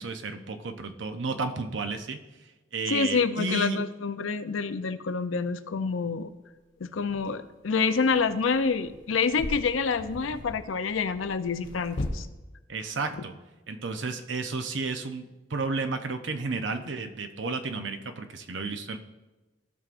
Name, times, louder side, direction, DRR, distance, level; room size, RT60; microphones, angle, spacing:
voice 1, 0.0-2.2 2.7-3.8 12.7-13.3 13.7-19.0, right 3 dB, 70° right, 7 dB, 0.7 m, -32 dB
voice 2, 2.9-6.3 6.8-12.3, left 5 dB, 90° left, 11 dB, 0.5 m, -27 dB
sound 1, 6.1-6.2 7.1-7.3 8.0-12.1, left 1 dB, 75° left, 0.9 m, -39 dB
14.5 x 6.1 x 2.5 m, 1.2 s
head